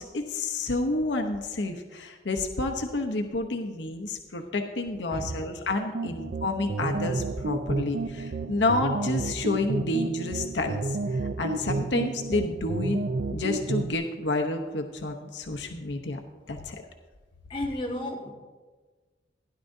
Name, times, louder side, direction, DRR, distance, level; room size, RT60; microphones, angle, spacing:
voice 1, 0.0-13.0 13.3-16.2 16.5-16.8, left 2 dB, 85° left, 0.8 m, -29 dB
voice 2, 5.1-5.5 6.1-6.2 17.5-18.3, left 1 dB, 30° left, 1.5 m, -33 dB
sound 1, 5.9-13.9, right 3 dB, 60° right, 0.4 m, -31 dB
16.0 x 10.5 x 2.7 m
head